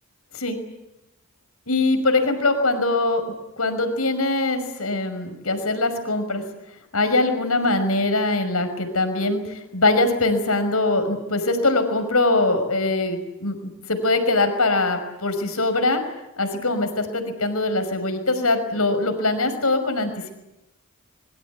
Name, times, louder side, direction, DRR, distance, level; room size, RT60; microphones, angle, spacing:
voice 1, 1.7-3.2 3.6-6.4 6.9-9.4 9.7-16.0 16.4-20.3, left 2 dB, 80° left, 8 dB, 5.6 m, -22 dB
25.5 x 23.0 x 8.5 m, 0.93 s
head